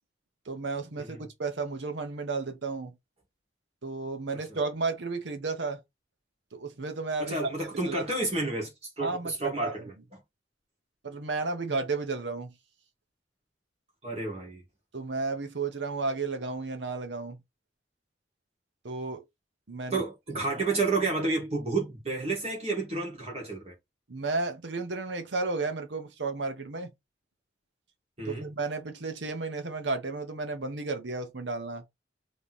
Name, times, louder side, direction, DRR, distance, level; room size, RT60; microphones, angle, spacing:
voice 1, 0.5-2.9 3.8-5.8 6.5-7.4 7.9-8.0 9.0-9.8 11.0-12.5 14.9-17.4 18.8-19.2 19.7-20.0 24.1-26.9 28.3-31.8, right 3 dB, 80° right, 0.9 m, -33 dB
voice 2, 7.2-9.9 14.0-14.6 19.9-23.7 28.2-28.5, right 3 dB, 35° right, 1.6 m, -30 dB
3.3 x 3.0 x 4.0 m
head